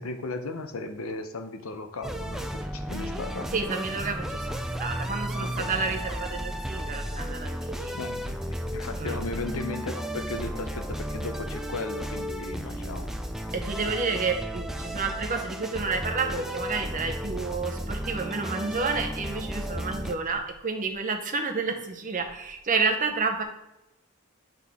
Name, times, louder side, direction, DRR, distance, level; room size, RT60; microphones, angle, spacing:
voice 1, 0.0-3.5 5.4-5.7 7.9-13.4, left 3 dB, 75° left, 8 dB, 0.7 m, -36 dB
sound 1, 2.0-20.1, equal, ahead, 0.3 m, -34 dB
voice 2, 3.5-8.0 9.0-9.2 13.5-23.4, right 4 dB, 40° right, 4 dB, 0.8 m, -30 dB
7.7 x 3.6 x 3.6 m, 0.91 s
head